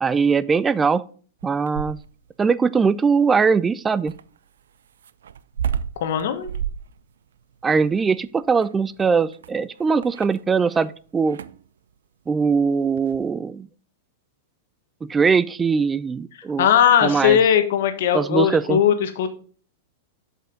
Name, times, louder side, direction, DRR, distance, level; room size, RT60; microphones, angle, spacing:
voice 1, 0.0-1.0 1.4-2.0 2.4-4.1 7.6-11.4 12.3-13.7 15.0-16.7 17.0-17.4 18.1-18.8, right 5 dB, 15° right, 18 dB, 0.4 m, -21 dB
sound 1, 1.4-2.3 4.1-10.9 11.2-11.7 13.0-13.3, right 8 dB, 80° right, 0.3 m, -32 dB
voice 2, 6.0-6.5 16.6-19.3, left 9 dB, 70° left, 9 dB, 1.2 m, -19 dB
7.7 x 5.4 x 3.9 m, 0.43 s
hypercardioid pair, 115°, 0 cm